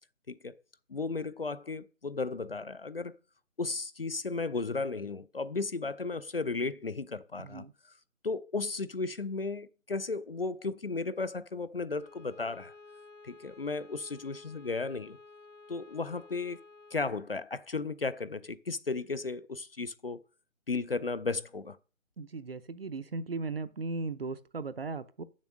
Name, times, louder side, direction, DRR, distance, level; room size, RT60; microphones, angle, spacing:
voice 1, 0.9-3.2 3.6-7.7 8.2-12.7 13.2-15.2 15.7-16.6 16.9-20.2 20.7-21.8, left 3 dB, 45° left, 0.4 m, -34 dB
Bowed string instrument, 11.9-17.1, left 3 dB, 65° left, 1.1 m, -53 dB
voice 2, 22.2-25.2, right 3 dB, 45° right, 0.6 m, -37 dB
7.3 x 6.3 x 6.2 m
figure-of-eight pair, 165°, 40 cm